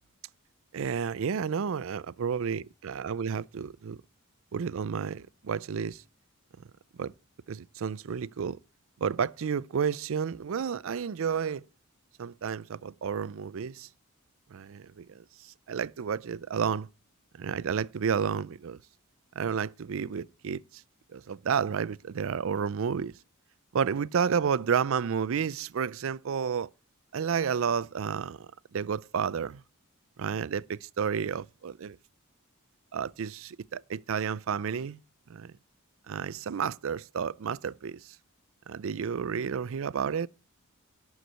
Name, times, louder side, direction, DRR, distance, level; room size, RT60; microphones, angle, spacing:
voice 1, 0.7-4.0 4.5-6.0 7.0-7.1 7.5-8.6 9.0-11.6 12.2-13.9 14.5-16.9 17.4-18.8 19.4-20.8 21.1-23.2 23.7-26.7 27.1-29.6 30.2-32.0 32.9-35.0 35.3-35.5 36.1-38.2 38.7-40.3, right 7 dB, 65° right, 0.4 m, -31 dB
11.5 x 4.7 x 7.9 m
head